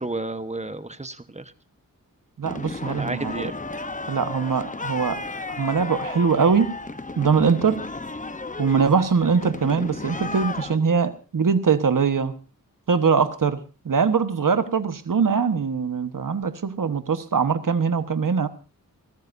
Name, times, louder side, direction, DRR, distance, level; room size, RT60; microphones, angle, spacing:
voice 1, 0.0-1.5 2.8-3.6, right 2 dB, 20° right, 11 dB, 1.2 m, -32 dB
sound 1, 2.4-10.8, left 3 dB, 20° left, 0.9 m, -34 dB
voice 2, 2.4-3.5 4.1-5.2 5.5-6.7 7.2-7.8 8.6-12.3 12.9-18.5, right 5 dB, 65° right, 10 dB, 1.3 m, -22 dB
29.5 x 13.0 x 2.7 m, 0.33 s
wide cardioid pair, 70°, 35 cm